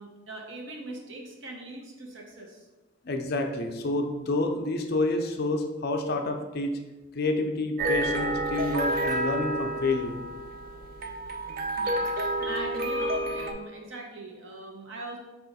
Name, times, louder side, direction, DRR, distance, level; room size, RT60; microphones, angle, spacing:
voice 1, 0.0-2.7 11.8-15.2, right 2 dB, 65° right, 1 dB, 0.8 m, -41 dB
voice 2, 3.0-6.7 7.1-10.2, left 2 dB, 50° left, 4 dB, 0.4 m, -28 dB
sound 1, 7.8-13.5, right 1 dB, 45° right, 0.3 m, -29 dB
4.9 x 2.4 x 4.0 m, 1.1 s
head